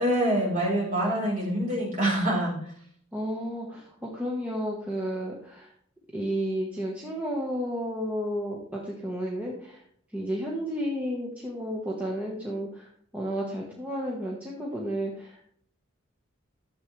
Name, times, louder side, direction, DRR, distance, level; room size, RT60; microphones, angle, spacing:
voice 1, 0.0-2.5, right 1 dB, 35° right, -4 dB, 4.1 m, -25 dB
voice 2, 3.1-5.7 6.1-9.8 10.1-15.5, equal, 5° right, -3 dB, 1.2 m, -32 dB
12.0 x 7.4 x 3.2 m, 0.62 s
head